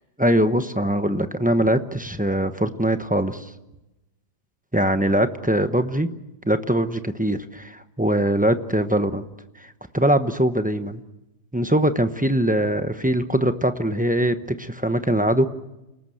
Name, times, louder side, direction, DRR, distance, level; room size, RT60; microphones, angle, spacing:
voice 1, 0.2-3.5 4.7-6.1 6.4-9.3 9.6-11.0 11.5-15.5, right 1 dB, 10° right, 8 dB, 0.5 m, -22 dB
29.0 x 19.0 x 7.9 m, 0.97 s
omnidirectional pair, 2.0 m